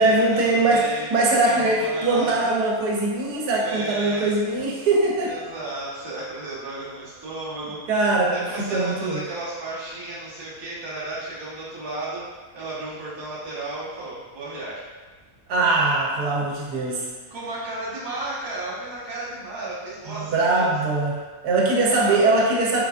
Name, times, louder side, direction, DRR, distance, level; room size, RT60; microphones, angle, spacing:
voice 1, 0.0-0.8 1.1-5.3 7.9-8.3 8.6-9.2 15.5-17.1 20.2-22.8, right 2 dB, 80° right, -2 dB, 1.2 m, -21 dB
voice 2, 0.5-1.1 1.4-2.5 3.6-4.5 4.8-4.9 5.2-7.8 8.3-12.2 12.5-14.9 17.3-20.7 21.9-22.2, right 2 dB, 40° right, -8 dB, 0.4 m, -34 dB
3.7 x 2.4 x 2.3 m, 1.4 s
omnidirectional pair, 1.7 m